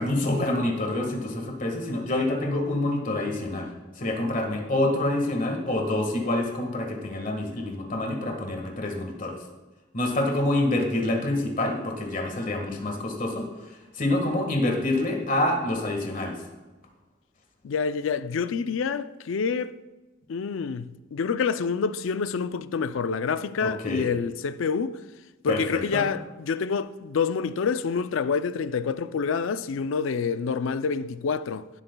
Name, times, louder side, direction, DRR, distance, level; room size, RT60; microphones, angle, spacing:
voice 1, 0.0-3.7 3.9-9.3 9.9-16.4 23.6-24.1 25.5-26.0, left 1 dB, 40° left, 1.6 m, -27 dB
voice 2, 17.6-19.8 20.3-25.0 25.4-31.7, left 5 dB, 75° left, 0.4 m, -27 dB
17.5 x 8.0 x 2.3 m
head